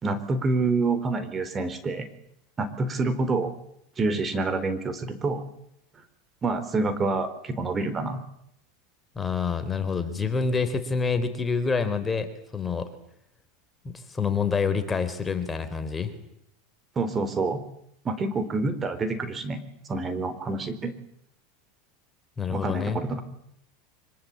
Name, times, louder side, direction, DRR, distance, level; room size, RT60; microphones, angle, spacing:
voice 1, 0.0-2.1 2.6-3.5 4.0-5.4 6.4-8.2 17.0-17.6 18.0-19.6 19.9-20.9 22.5-23.2, right 3 dB, 25° right, 11 dB, 4.2 m, -27 dB
voice 2, 9.2-12.9 13.8-16.1 22.4-23.0, left 5 dB, 20° left, 9 dB, 4.1 m, -27 dB
25.0 x 24.5 x 8.7 m, 0.74 s
hypercardioid pair, 105°, 0 cm